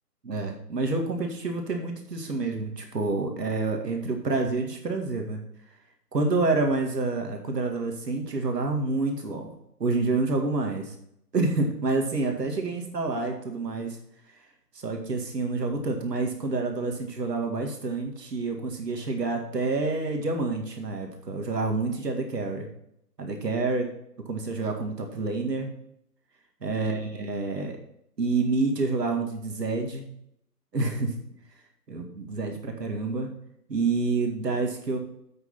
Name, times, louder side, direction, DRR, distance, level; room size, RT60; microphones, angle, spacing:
voice 1, 0.2-5.4 6.1-9.5 9.8-10.9 11.3-14.0 14.8-22.7 23.2-23.9 24.3-25.7 26.6-27.8 28.2-30.1 30.7-31.2 31.9-33.3 33.7-35.0, right 3 dB, 70° right, 3 dB, 2.1 m, -28 dB
8.0 x 6.1 x 5.7 m, 0.75 s
figure-of-eight pair, 150°, 50 cm